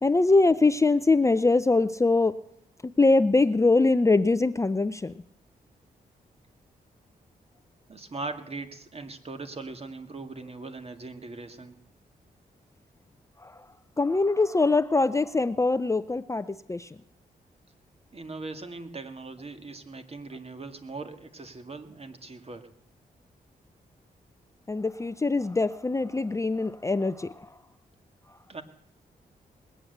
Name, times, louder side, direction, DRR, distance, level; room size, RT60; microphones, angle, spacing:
voice 1, 0.0-2.4 3.0-5.1 13.4-13.5 14.0-16.9 24.7-27.5, left 3 dB, 20° left, 14 dB, 0.5 m, -23 dB
voice 2, 7.9-11.8 18.1-22.7 28.5-28.6, right 3 dB, 35° right, 7 dB, 2.0 m, -40 dB
20.5 x 8.7 x 8.0 m, 0.77 s
cardioid pair, 65°, 17 cm